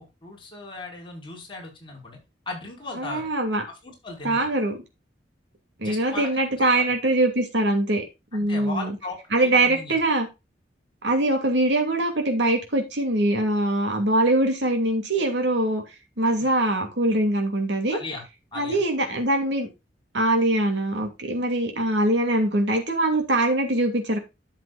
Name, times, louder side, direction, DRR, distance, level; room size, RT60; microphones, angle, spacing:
voice 1, 0.0-2.2 2.4-3.3 3.7-4.5 5.8-6.3 6.7-6.9 8.4-10.0 17.9-18.2 18.5-18.8, left 3 dB, 30° left, 5.1 m, -37 dB
voice 2, 3.0-3.6 4.2-4.8 5.8-8.0 8.3-8.9 9.3-10.3 11.0-15.8 16.2-18.0 18.6-19.7 20.1-24.2, right 1 dB, 75° right, 2.6 m, -23 dB
12.0 x 7.4 x 2.4 m
head